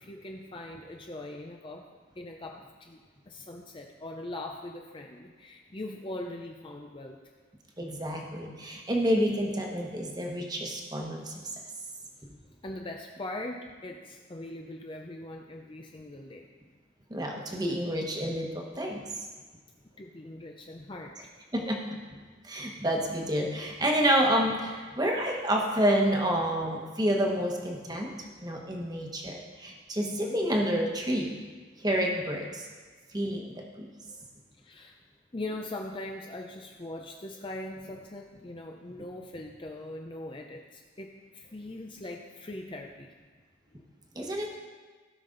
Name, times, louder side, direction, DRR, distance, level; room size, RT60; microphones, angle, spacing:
voice 1, 0.0-7.2 12.6-16.5 19.8-21.2 30.0-30.4 34.6-35.0 35.3-43.1, left 1 dB, 25° left, 1 dB, 0.6 m, -41 dB
voice 2, 7.8-11.5 17.1-19.3 21.5-22.0 22.4-28.1 28.4-31.3 31.8-32.7 33.1-33.9 44.1-44.5, equal, 20° right, 0 dB, 1.2 m, -29 dB
16.5 x 5.9 x 3.9 m, 1.4 s
head